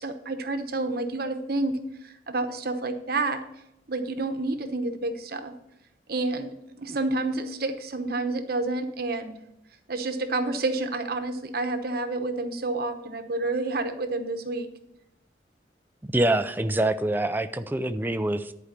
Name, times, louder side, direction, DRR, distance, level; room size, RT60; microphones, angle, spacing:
voice 1, 0.0-1.8 2.0-3.4 3.9-5.5 6.1-9.4 9.9-14.7, right 2 dB, 55° right, 7 dB, 0.9 m, -29 dB
voice 2, 16.0-18.5, right 1 dB, 10° right, 10 dB, 0.4 m, -25 dB
11.0 x 4.8 x 6.7 m, 0.84 s
head